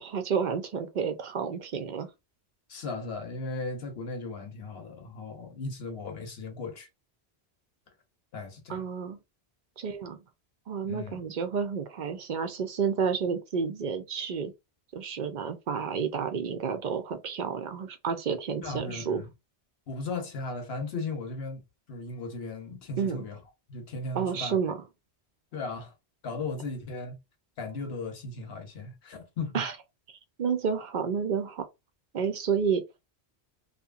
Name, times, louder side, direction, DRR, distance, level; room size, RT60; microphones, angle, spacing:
voice 1, 0.0-2.1 8.7-9.2 9.8-10.2 10.7-14.5 14.9-19.2 23.0-23.2 24.1-24.8 29.5-29.7 30.1-31.6 32.1-32.8, right 6 dB, 60° right, 0.5 m, -30 dB
voice 2, 2.7-6.9 8.3-8.9 10.9-11.2 18.6-19.3 19.9-21.6 21.9-23.4 23.7-24.6 25.5-25.9 26.2-27.2 27.6-29.5, left 3 dB, 70° left, 1.1 m, -36 dB
2.7 x 2.4 x 2.4 m
omnidirectional pair, 1.1 m